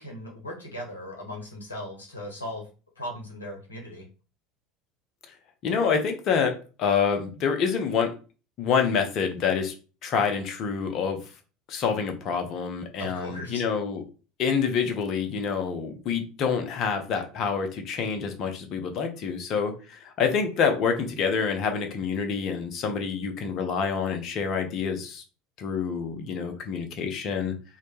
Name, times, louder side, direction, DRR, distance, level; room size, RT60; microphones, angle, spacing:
voice 1, 0.0-2.6 3.0-4.0 13.0-13.6, left 1 dB, 85° left, -1 dB, 0.8 m, -38 dB
voice 2, 5.6-8.1 8.6-9.7 10.0-11.2 11.7-14.0 14.4-25.2 25.6-27.5, left 6 dB, 45° left, 6 dB, 0.5 m, -27 dB
2.1 x 2.0 x 3.1 m, 0.35 s
figure-of-eight pair, 75°, 0 cm